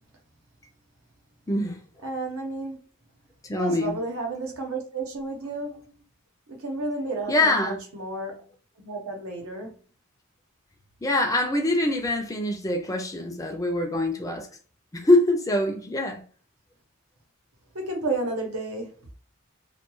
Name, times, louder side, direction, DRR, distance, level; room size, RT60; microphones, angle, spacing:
voice 1, 1.5-2.1 3.4-4.0 7.3-7.8 11.0-14.5 14.9-16.2, left 1 dB, 15° left, 0.4 m, -24 dB
voice 2, 2.0-2.8 3.5-5.9 6.5-8.4 8.8-9.8 17.7-19.1, right 2 dB, 75° right, 0.8 m, -32 dB
2.3 x 2.2 x 2.9 m
head